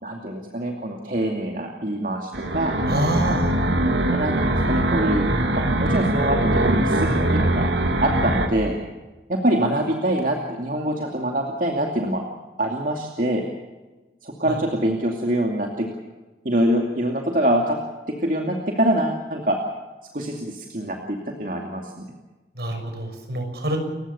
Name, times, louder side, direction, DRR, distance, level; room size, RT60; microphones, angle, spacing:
voice 1, 0.0-2.7 3.2-3.4 4.1-7.7 8.0-8.8 9.3-12.2 12.6-13.5 14.2-15.9 16.4-17.8 18.1-19.6 20.1-22.1, right 1 dB, 50° right, 1 dB, 2.6 m, -24 dB
sound 1, 2.3-8.5, right 1 dB, 85° right, 2.6 m, -22 dB
voice 2, 2.9-3.5 22.6-23.8, right 1 dB, 65° right, 5 dB, 6.2 m, -26 dB
30.0 x 16.0 x 7.0 m, 1.2 s
head